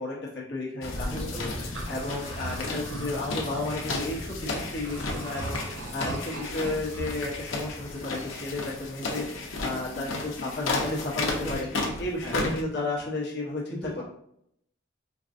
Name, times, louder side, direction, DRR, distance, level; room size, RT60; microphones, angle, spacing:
voice 1, 0.0-1.2 1.9-11.7 12.0-14.0, left 2 dB, 60° left, -3 dB, 1.0 m, -33 dB
sound 1, 0.8-12.6, left 2 dB, 90° left, 0.8 m, -34 dB
sound 2, 0.8-11.9, left 1 dB, 30° left, 0.4 m, -44 dB
voice 2, 1.1-1.8 11.3-11.8 12.2-12.4 13.7-14.0, equal, 5° left, -7 dB, 1.0 m, -38 dB
sound 3, 1.4-7.1, right 2 dB, 75° right, 0.7 m, -39 dB
4.5 x 2.6 x 2.5 m, 0.71 s
head